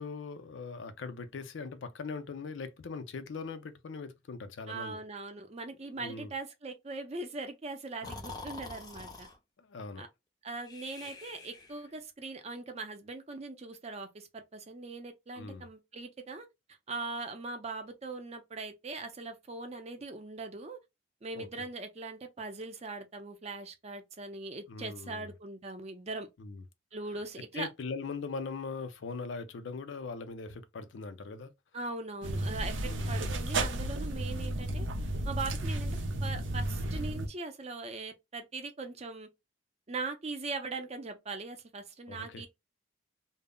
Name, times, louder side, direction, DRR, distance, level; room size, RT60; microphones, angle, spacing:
voice 1, 0.0-5.0 6.0-6.3 8.0-8.1 9.6-10.1 15.4-15.7 21.3-21.5 24.7-25.3 26.4-26.6 27.5-31.5 32.9-33.1 42.1-42.4, left 4 dB, 85° left, 0.4 m, -40 dB
voice 2, 4.7-9.3 10.0-10.1 10.4-16.5 16.9-20.8 21.2-26.3 26.9-27.7 31.7-34.9 35.3-39.3 39.9-42.5, right 3 dB, 35° right, 0.5 m, -40 dB
Breathing, 8.0-9.4 10.6-11.9, left 3 dB, 20° left, 0.5 m, -45 dB
sound 1, 32.2-37.3, right 1 dB, 90° right, 0.5 m, -33 dB
2.1 x 2.0 x 3.5 m
head